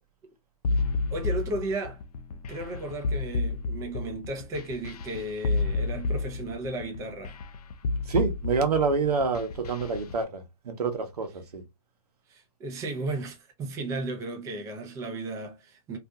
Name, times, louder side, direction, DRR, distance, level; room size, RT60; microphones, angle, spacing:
sound 1, 0.6-10.2, left 3 dB, 80° left, 0.4 m, -30 dB
voice 1, 1.1-2.0 2.5-7.4 12.3-16.0, right 2 dB, 15° right, 0.5 m, -34 dB
voice 2, 8.1-11.6, right 5 dB, 80° right, 0.8 m, -27 dB
2.6 x 2.4 x 2.3 m
hypercardioid pair, 135°, 20 cm